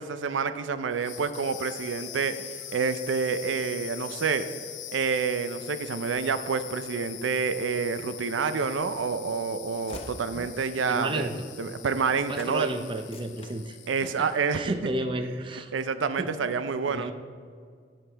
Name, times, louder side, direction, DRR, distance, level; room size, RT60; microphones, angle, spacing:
voice 1, 0.0-2.3 2.7-4.5 4.9-11.3 11.6-12.7 13.9-14.7 15.7-17.1, right 5 dB, 85° right, 11 dB, 0.5 m, -28 dB
sound 1, 0.9-14.5, left 12 dB, 80° left, 0.6 m, -43 dB
Train / Slam, 8.5-12.1 12.3-12.6 12.9-14.1 14.5-14.9, left 2 dB, 30° left, 0.7 m, -48 dB
voice 2, 10.9-11.5 12.3-14.3 14.5-15.7 16.2-16.3 16.9-17.1, right 1 dB, 25° right, 8 dB, 0.5 m, -32 dB
15.5 x 5.4 x 3.3 m, 2.1 s
head